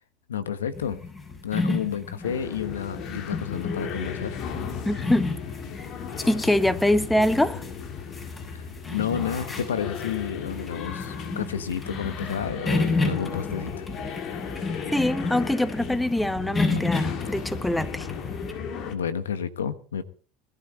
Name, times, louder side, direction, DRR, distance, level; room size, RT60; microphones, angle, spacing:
voice 1, 0.3-1.0 1.4-4.4 8.5-13.9 16.7-16.8 18.9-20.0, left 8 dB, 90° left, 1.2 m, -31 dB
sound 1, 0.7-18.5, left 3 dB, 25° left, 6.4 m, -32 dB
sound 2, 2.2-19.0, left 6 dB, 55° left, 2.5 m, -36 dB
voice 2, 4.8-5.3 5.8-5.9 6.3-7.6 14.9-18.1, left 1 dB, 5° left, 1.2 m, -24 dB
21.0 x 12.5 x 4.0 m
hypercardioid pair, 80°, 0 cm